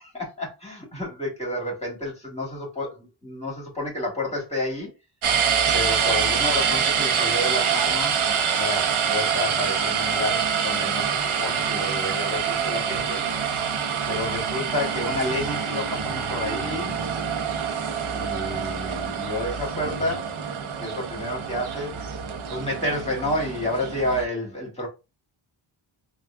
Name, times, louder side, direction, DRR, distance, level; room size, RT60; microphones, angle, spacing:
voice 1, 0.0-4.9 5.7-8.3 8.5-13.2 14.1-17.0 18.1-20.3 20.6-22.0 22.5-24.9, left 1 dB, 15° left, 2.0 m, -30 dB
sound 1, 5.2-24.2, right 7 dB, 75° right, 0.7 m, -26 dB
3.4 x 2.4 x 3.3 m
wide cardioid pair, 100°, 49 cm